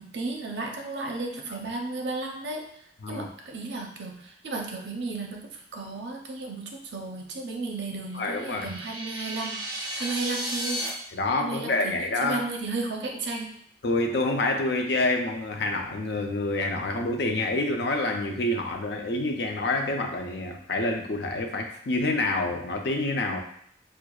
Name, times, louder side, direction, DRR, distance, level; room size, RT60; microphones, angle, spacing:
voice 1, 0.0-2.6 3.1-10.8 11.4-11.9 12.2-13.5, right 3 dB, 85° right, 1 dB, 0.6 m, -34 dB
voice 2, 8.1-8.7 11.1-12.4 13.8-23.4, left 2 dB, 75° left, 3 dB, 0.5 m, -27 dB
sound 1, 8.1-10.9, right 1 dB, 60° right, 1.0 m, -34 dB
6.1 x 2.1 x 2.3 m, 0.67 s
head